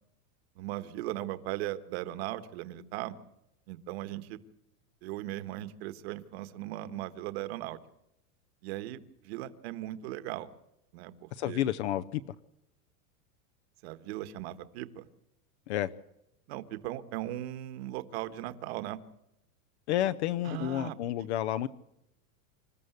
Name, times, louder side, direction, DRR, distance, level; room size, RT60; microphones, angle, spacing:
voice 1, 0.6-3.1 3.7-4.4 5.0-7.8 8.6-9.0 9.2-10.5 10.9-11.6 13.8-15.1 16.5-19.0 20.4-21.0, right 14 dB, 45° right, 11 dB, 1.4 m, -38 dB
voice 2, 11.3-12.2 15.7-15.9 19.9-21.7, left 12 dB, 50° left, 14 dB, 0.7 m, -30 dB
27.0 x 14.0 x 8.1 m, 0.85 s
supercardioid pair, 175°, 44 cm